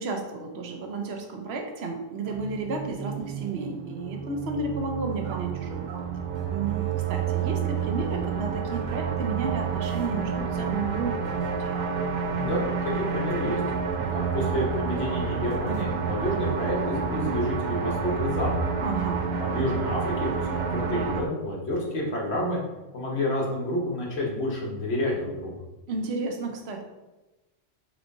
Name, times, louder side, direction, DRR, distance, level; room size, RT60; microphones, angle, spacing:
voice 1, 0.0-6.1 6.5-11.8 18.8-19.3 25.9-26.8, right 3 dB, 75° right, 3 dB, 0.9 m, -32 dB
sound 1, 2.2-21.2, right 6 dB, 55° right, 0.5 m, -29 dB
voice 2, 12.4-12.7 12.9-13.6 13.9-18.7 19.4-22.6 22.9-25.6, left 1 dB, 75° left, -3 dB, 1.3 m, -29 dB
4.2 x 3.1 x 2.6 m, 1.1 s
omnidirectional pair, 1.1 m